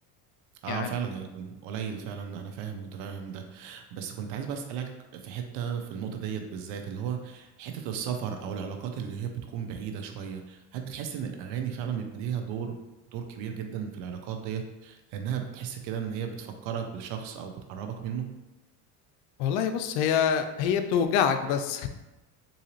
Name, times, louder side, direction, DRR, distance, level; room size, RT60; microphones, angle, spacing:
voice 1, 0.6-12.8 13.1-18.3, right 8 dB, 75° right, 5 dB, 0.7 m, -35 dB
voice 2, 19.4-21.9, left 8 dB, 75° left, 8 dB, 0.5 m, -26 dB
3.8 x 2.7 x 3.0 m, 1.0 s
supercardioid pair, 100°, 44 cm